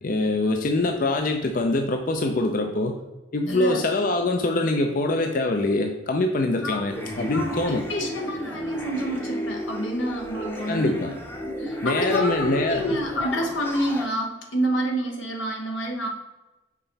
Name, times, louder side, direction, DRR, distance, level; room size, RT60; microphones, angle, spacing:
voice 1, 0.0-2.9 3.3-7.8 10.7-11.1 11.8-13.0, left 2 dB, 45° left, 4 dB, 0.5 m, -24 dB
voice 2, 3.5-3.8 6.6-6.9 7.2-10.9 11.6-16.1, equal, 85° left, 2 dB, 1.3 m, -28 dB
sound 1, 6.9-14.1, left 1 dB, 10° left, 0.7 m, -33 dB
6.0 x 4.4 x 4.0 m, 1.1 s
head